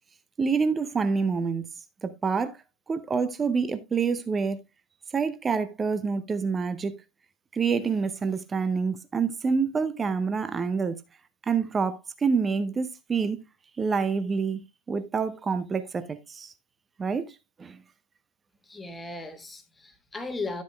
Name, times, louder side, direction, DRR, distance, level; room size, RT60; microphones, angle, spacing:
voice 1, 0.4-1.7 2.0-2.6 2.9-4.6 5.1-6.9 7.5-11.0 11.5-13.4 13.8-16.5 17.0-17.8, right 5 dB, 15° right, 0.6 m, -27 dB
voice 2, 18.7-20.6, left 3 dB, 10° left, 1.4 m, -36 dB
12.0 x 8.2 x 2.3 m
figure-of-eight pair, 90°, 0 cm